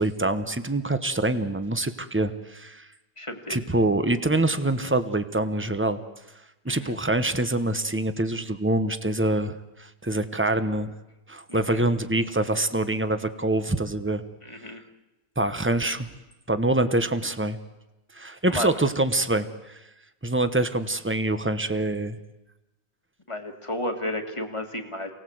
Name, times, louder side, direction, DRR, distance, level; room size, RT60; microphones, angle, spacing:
voice 1, 0.0-2.9 3.5-6.0 6.6-10.9 11.3-14.2 15.4-16.1 16.5-17.6 18.1-19.8 20.2-22.2, right 2 dB, 10° right, 10 dB, 0.7 m, -25 dB
voice 2, 3.2-3.6 6.7-7.0 11.5-11.8 14.4-14.8 18.5-18.7 23.3-25.1, left 1 dB, 15° left, 4 dB, 1.8 m, -32 dB
28.5 x 18.5 x 7.9 m, 1.0 s
omnidirectional pair, 1.9 m